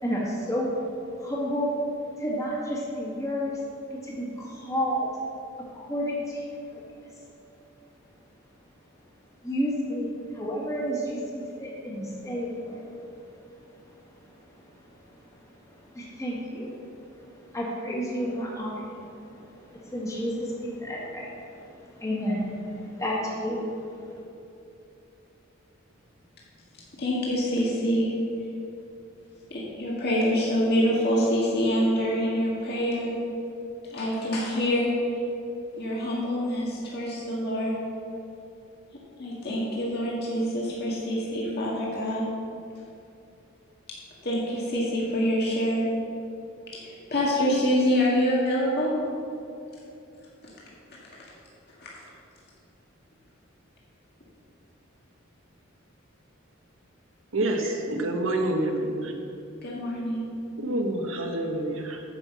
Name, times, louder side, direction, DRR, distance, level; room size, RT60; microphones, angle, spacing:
voice 1, 0.0-0.7 1.2-1.7 2.2-3.6 4.0-5.1 5.7-6.4 6.7-6.8 9.4-12.8 15.9-16.8 17.5-19.2 19.7-21.4 21.7-23.7, equal, 15° left, -4 dB, 1.7 m, -30 dB
voice 2, 27.0-28.1 29.5-33.1 33.9-35.0 35.8-37.8 39.2-42.2 44.2-45.8 46.7-48.9 51.8-51.9 59.6-60.2, equal, 55° left, -5 dB, 1.8 m, -26 dB
voice 3, 57.3-59.2 60.6-62.0, right 1 dB, 75° right, 3 dB, 1.2 m, -27 dB
9.8 x 5.7 x 7.2 m, 2.8 s
head